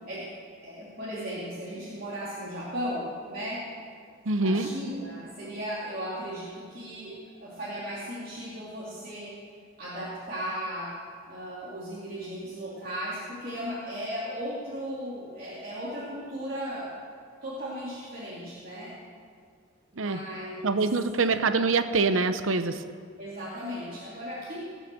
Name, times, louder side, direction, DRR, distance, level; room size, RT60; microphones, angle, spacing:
voice 1, 0.6-3.7 4.4-9.3 9.8-11.0 11.3-17.0 17.4-18.9 19.9-20.8 23.2-24.6, equal, 45° right, -9 dB, 2.8 m, -36 dB
voice 2, 4.3-4.7 20.0-20.2 20.6-22.8, right 3 dB, 80° right, 10 dB, 0.8 m, -25 dB
19.0 x 6.5 x 7.7 m, 2.1 s
head